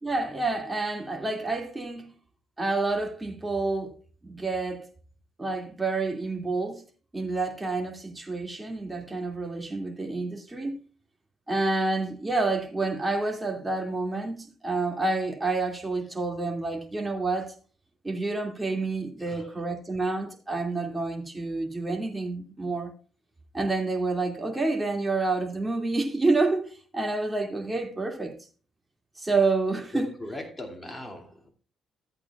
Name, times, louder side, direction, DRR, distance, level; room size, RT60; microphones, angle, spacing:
voice 1, 0.0-2.1 2.6-3.9 4.2-4.9 5.4-6.8 7.1-10.8 11.5-17.5 18.0-22.9 23.5-28.4 29.2-30.1, right 3 dB, 15° right, 2.3 m, -28 dB
voice 2, 19.2-19.6 29.9-31.5, left 1 dB, 15° left, 2.4 m, -39 dB
14.5 x 8.4 x 2.4 m
cardioid pair, 90°, 0 cm